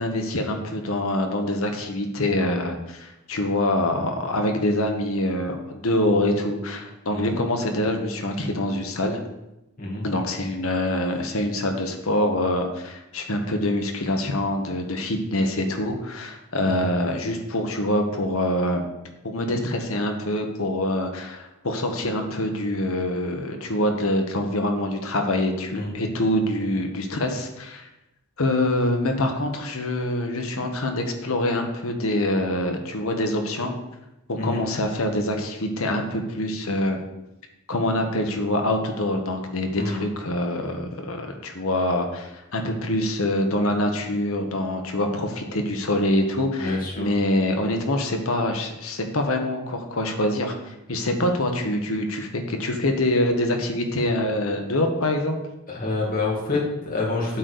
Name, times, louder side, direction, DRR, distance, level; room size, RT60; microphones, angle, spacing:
voice 1, 0.0-9.2 10.0-18.8 19.2-27.9 28.4-33.7 34.3-37.0 37.7-55.4, left 1 dB, 70° left, 4 dB, 1.2 m, -25 dB
voice 2, 46.6-47.1 55.7-57.4, left 3 dB, 40° left, -3 dB, 2.2 m, -27 dB
8.5 x 4.0 x 6.6 m, 0.94 s
head